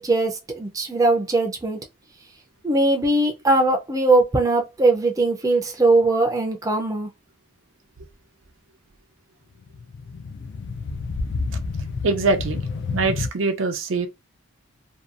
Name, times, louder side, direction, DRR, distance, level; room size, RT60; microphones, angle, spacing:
voice 1, 0.0-1.8 2.6-7.1, right 2 dB, 15° right, 0.4 m, -20 dB
sound 1, 9.6-13.3, left 4 dB, 60° left, 0.3 m, -29 dB
voice 2, 12.0-12.6 12.9-14.1, right 3 dB, 70° right, 0.5 m, -23 dB
2.7 x 2.2 x 2.4 m
head